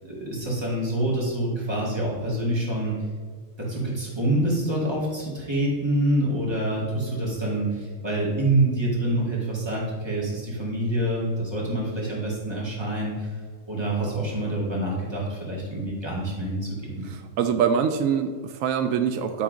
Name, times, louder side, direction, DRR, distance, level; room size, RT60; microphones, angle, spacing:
voice 1, 0.0-3.0 3.6-13.3 13.7-17.1, right 1 dB, 20° right, -5 dB, 2.1 m, -26 dB
voice 2, 17.1-19.4, right 7 dB, 85° right, 7 dB, 1.0 m, -24 dB
10.5 x 3.7 x 5.0 m, 1.6 s
omnidirectional pair, 1.3 m